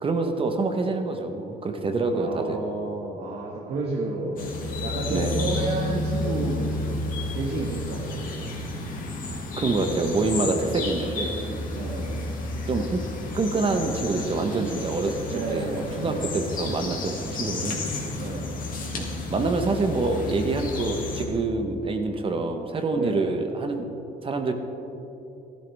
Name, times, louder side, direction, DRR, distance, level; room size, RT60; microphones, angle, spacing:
voice 1, 0.0-2.6 5.1-5.5 9.6-11.3 12.7-13.0 13.3-17.8 18.9-24.0 24.2-24.5, right 3 dB, 30° right, 5 dB, 1.2 m, -26 dB
voice 2, 2.1-4.4 4.8-7.1 7.3-8.5 11.7-12.2 15.3-16.4 18.2-18.5 22.9-23.3, right 3 dB, 70° right, -3 dB, 1.9 m, -31 dB
sound 1, 4.4-21.2, left 2 dB, 55° left, 2.4 m, -31 dB
15.0 x 12.5 x 3.6 m, 3.0 s
cardioid pair, 110°, 17 cm